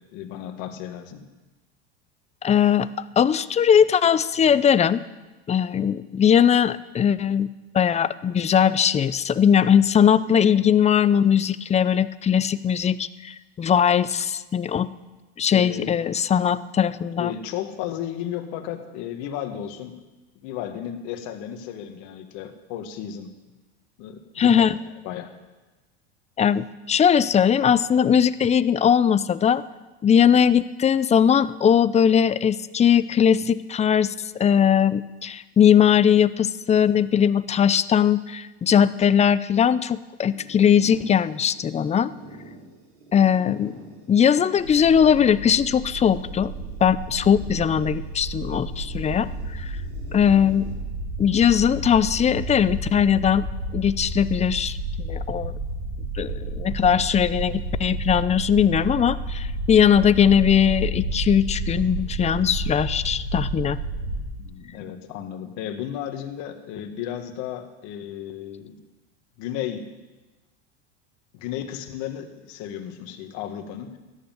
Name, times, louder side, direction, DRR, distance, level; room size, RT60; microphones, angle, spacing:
voice 1, 0.1-1.3 15.5-15.9 17.2-20.0 20.4-23.4 24.0-24.7 25.0-25.3 64.4-68.8 69.4-69.9 71.3-74.0, left 9 dB, 60° left, 6 dB, 2.0 m, -33 dB
voice 2, 2.4-2.9 3.2-5.0 5.5-7.5 7.7-14.9 15.4-17.3 24.4-24.7 26.4-29.6 30.0-42.1 43.1-43.7 44.1-46.5 46.8-49.7 50.1-50.7 51.2-53.4 53.7-55.5 56.2-63.8, left 8 dB, 20° left, 16 dB, 0.6 m, -20 dB
sound 1, 40.3-50.8, right 1 dB, 75° right, 4.4 m, -46 dB
sound 2, 44.6-64.2, right 2 dB, 90° right, 5.9 m, -31 dB
14.0 x 10.0 x 9.2 m, 1.2 s
hypercardioid pair, 95°, 33 cm